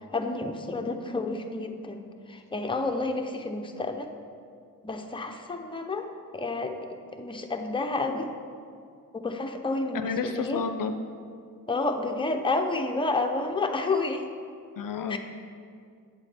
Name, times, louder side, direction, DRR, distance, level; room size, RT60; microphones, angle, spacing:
voice 1, 0.1-2.0 2.3-4.1 4.8-6.8 7.1-8.3 9.1-10.6 11.7-14.3 15.1-15.2, left 3 dB, 15° left, 4 dB, 0.6 m, -30 dB
voice 2, 9.9-11.0 14.8-15.2, left 5 dB, 70° left, 8 dB, 0.5 m, -30 dB
8.2 x 7.5 x 3.4 m, 2.2 s
cardioid pair, 75°, 35 cm